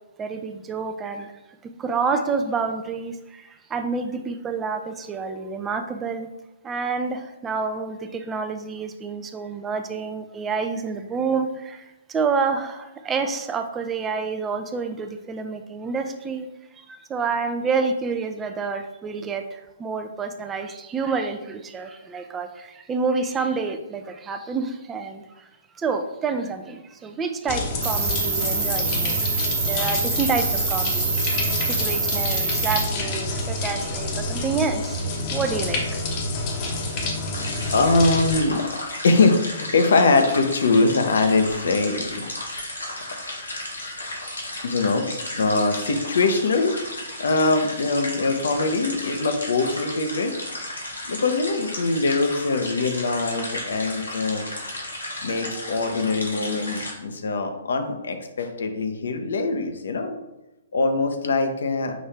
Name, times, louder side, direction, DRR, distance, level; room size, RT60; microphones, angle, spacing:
voice 1, 0.2-1.3 1.6-6.3 6.6-16.5 16.7-25.5 25.7-35.0 35.3-36.0 36.9-37.0 37.3-37.4, right 4 dB, 15° right, 7 dB, 0.4 m, -28 dB
sound 1, 27.5-38.4, left 2 dB, 35° left, 0.9 m, -28 dB
Cricket, 27.8-32.8, right 4 dB, 45° right, 1.2 m, -26 dB
sound 2, 37.3-56.9, left 1 dB, 85° left, 1.3 m, -34 dB
voice 2, 37.7-38.7 39.0-42.2 44.6-45.1 45.4-46.7 47.2-50.4 51.1-54.4 55.2-60.2 60.7-61.9, left 3 dB, 70° left, 6 dB, 0.7 m, -22 dB
5.9 x 2.7 x 3.3 m, 0.97 s
figure-of-eight pair, 125°, 0 cm